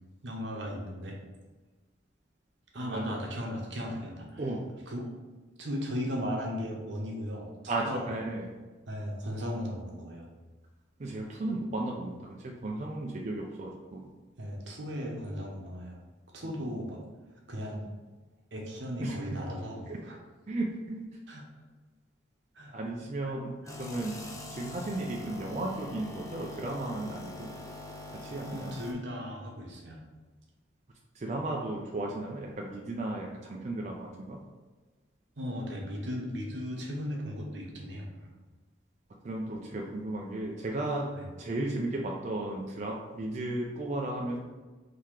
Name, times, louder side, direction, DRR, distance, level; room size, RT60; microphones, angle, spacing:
voice 1, 0.2-1.2 2.7-4.4 4.9-5.1 5.6-7.5 7.9-8.1 8.9-10.3 14.4-16.0 16.3-17.0 17.5-17.9 18.5-20.2 21.3-21.4 22.6-22.8 23.2-23.3 23.6-23.7 28.4-30.0 35.4-38.3 41.1-41.3, equal, 75° right, -1 dB, 1.0 m, -36 dB
voice 2, 7.7-8.5 11.0-14.1 16.4-16.5 16.7-16.8 19.0-19.4 19.9-20.0 20.5-21.1 22.7-24.2 24.5-27.5 28.2-28.8 31.1-34.4 39.2-44.4, right 2 dB, 40° right, -1 dB, 0.4 m, -35 dB
sound 1, 23.7-28.9, left 2 dB, 15° left, 0.5 m, -43 dB
3.9 x 2.8 x 4.7 m, 1.3 s
head